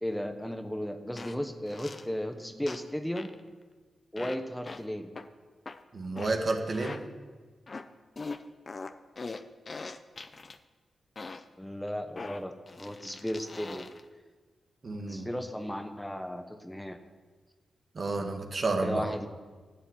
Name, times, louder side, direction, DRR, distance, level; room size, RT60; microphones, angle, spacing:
voice 1, 0.0-3.3 4.1-5.1 11.6-13.9 15.1-17.0 18.8-19.3, equal, 5° left, 7 dB, 1.1 m, -35 dB
sound 1, 1.2-1.4 1.7-2.1 2.7-2.9 3.2-3.4 4.2-4.4 4.7-4.8 5.2-5.3 5.7-5.8 6.2-6.4 6.7-7.0 7.7-7.9 8.2-10.6 11.2-11.4 12.2-14.0, left 3 dB, 45° left, 0.7 m, -41 dB
voice 2, 5.9-7.0 14.8-15.3 18.0-19.0, right 3 dB, 55° right, 3 dB, 1.7 m, -30 dB
12.0 x 6.9 x 8.9 m, 1.4 s
cardioid pair, 45°, 0 cm